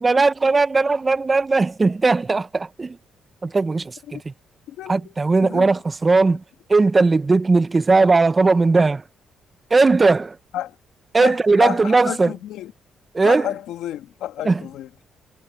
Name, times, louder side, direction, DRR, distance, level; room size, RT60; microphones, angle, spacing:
voice 1, 0.0-3.0 3.4-4.3 4.9-6.4 6.7-9.0 9.7-10.4 11.1-12.3 13.1-13.5 14.4-14.6, right 3 dB, 25° right, 0.9 m, -18 dB
voice 2, 4.7-5.1 5.4-5.7 10.5-10.8 11.2-12.7 13.2-15.0, left 12 dB, 85° left, 2.2 m, -30 dB
cardioid pair, 90°, 0 cm